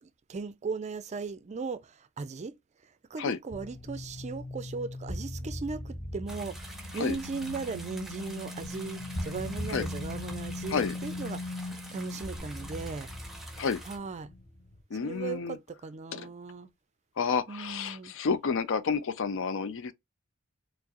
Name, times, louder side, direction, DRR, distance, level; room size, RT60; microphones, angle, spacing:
voice 1, 0.0-2.6 3.1-11.5 11.9-13.1 13.9-14.3 15.0-16.7 17.5-18.1, right 4 dB, 35° right, 0.4 m, -37 dB
sound 1, 3.5-14.8, left 1 dB, 25° left, 0.8 m, -39 dB
sound 2, 6.3-14.0, right 1 dB, ahead, 0.8 m, -47 dB
voice 2, 14.9-15.6 16.1-16.3 17.2-19.9, left 5 dB, 65° left, 0.5 m, -30 dB
4.5 x 2.0 x 2.9 m
head